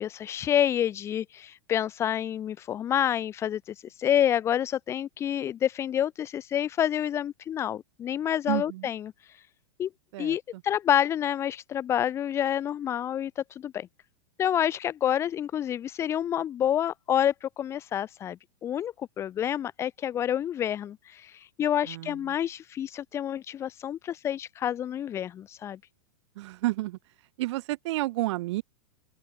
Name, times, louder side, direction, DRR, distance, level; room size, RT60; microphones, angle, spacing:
voice 1, 0.0-9.1 9.8-9.9 10.2-13.9 14.4-21.3 21.6-25.8, left 10 dB, 15° left, 0.4 m, -28 dB
voice 2, 8.5-8.9 10.1-10.6 21.8-22.4 26.4-27.0 27.4-28.6, right 18 dB, 55° right, 0.5 m, -31 dB
open air
supercardioid pair, 155°, 18 cm